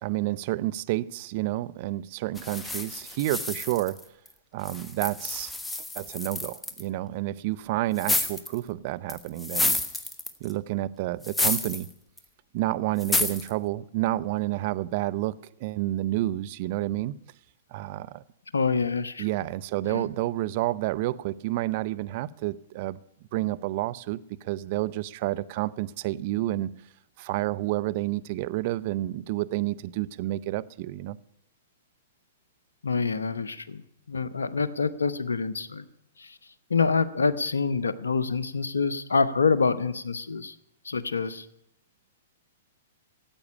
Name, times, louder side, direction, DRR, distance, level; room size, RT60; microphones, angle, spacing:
voice 1, 0.0-4.0 4.5-5.5 6.0-9.8 10.4-11.9 12.5-17.2 17.7-18.2 19.2-23.0 23.3-26.7 27.2-31.2, right 16 dB, 50° right, 0.6 m, -29 dB
sound 1, 2.4-4.3 4.6-6.8 8.0-8.6 9.1-10.5 11.2-11.9 12.2-12.3 13.0-13.5, left 2 dB, 10° left, 1.3 m, -29 dB
voice 2, 18.5-19.3 19.8-20.1 32.8-33.8 34.1-35.8 36.2-36.4 36.7-40.5 40.8-41.5, left 4 dB, 85° left, 0.9 m, -26 dB
14.5 x 8.6 x 9.7 m
hypercardioid pair, 120°, 0 cm